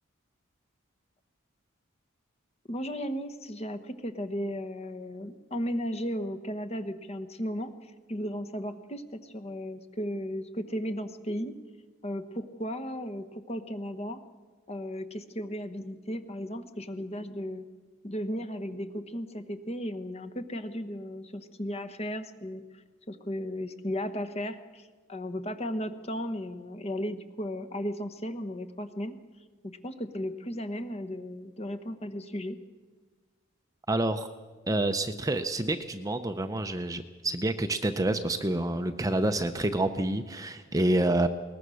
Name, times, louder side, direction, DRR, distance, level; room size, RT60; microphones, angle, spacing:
voice 1, 2.7-11.6 12.0-14.2 14.7-17.6 18.0-29.2 29.6-32.6, equal, 30° left, 9 dB, 1.1 m, -35 dB
voice 2, 33.9-34.3 34.7-41.3, right 1 dB, 15° right, 8 dB, 0.6 m, -28 dB
21.0 x 19.5 x 6.3 m, 1.4 s
head